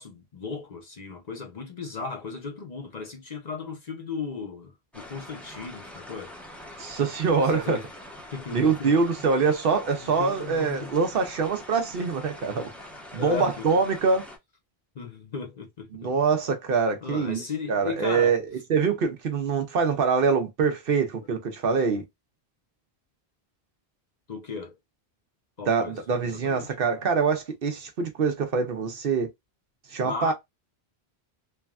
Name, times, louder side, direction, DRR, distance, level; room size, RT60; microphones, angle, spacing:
voice 1, 0.0-6.3 7.3-7.9 8.3-9.0 10.0-10.9 13.2-13.7 14.9-16.1 17.0-18.4 24.3-24.7 25.6-26.7 30.0-30.3, left 5 dB, 45° left, 0.7 m, -36 dB
sound 1, 4.9-14.4, left 1 dB, ahead, 0.6 m, -44 dB
voice 2, 6.8-7.8 8.5-12.7 13.1-14.2 15.9-17.4 17.7-18.4 18.7-22.0 25.7-29.3 29.9-30.3, right 5 dB, 65° right, 0.8 m, -24 dB
3.3 x 2.2 x 2.3 m
omnidirectional pair, 1.1 m